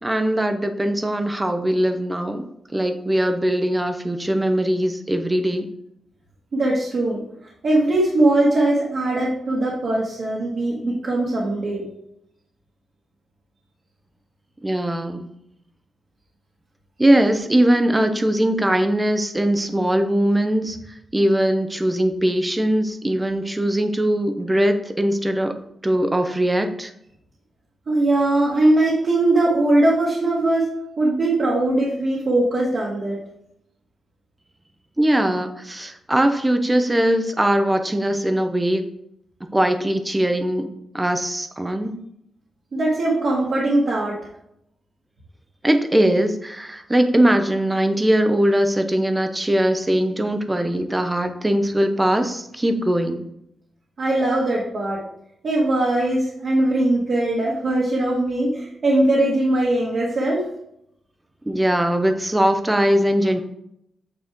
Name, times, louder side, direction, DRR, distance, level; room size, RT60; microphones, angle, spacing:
voice 1, 0.0-2.4 2.7-5.7 14.6-15.3 17.0-20.8 21.1-25.5 25.8-26.9 35.0-38.9 39.5-40.7 40.9-42.0 45.6-53.2 61.5-63.4, right 1 dB, 10° right, 7 dB, 0.7 m, -20 dB
voice 2, 6.5-7.2 7.6-11.9 27.9-33.2 42.7-44.2 54.0-55.0 55.4-60.4, right 1 dB, 45° right, -5 dB, 1.6 m, -20 dB
8.8 x 4.3 x 3.6 m, 0.76 s
wide cardioid pair, 150°, 0 cm